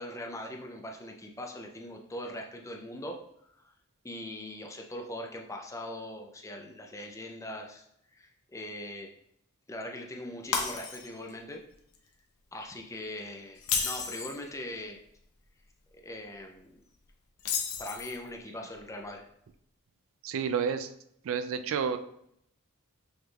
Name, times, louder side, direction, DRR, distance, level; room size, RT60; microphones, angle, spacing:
voice 1, 0.0-3.2 3.6-3.7 4.0-7.9 8.1-9.1 9.7-11.6 12.5-15.0 16.0-16.8 17.8-19.2, left 1 dB, 15° left, 2 dB, 0.5 m, -41 dB
Shatter, 10.5-11.3 11.7-12.0 13.6-14.4 17.4-18.3, left 6 dB, 70° left, 0.7 m, -32 dB
voice 2, 20.2-20.9 21.2-22.0, right 6 dB, 60° right, 10 dB, 0.3 m, -30 dB
6.3 x 3.4 x 2.3 m, 0.72 s
head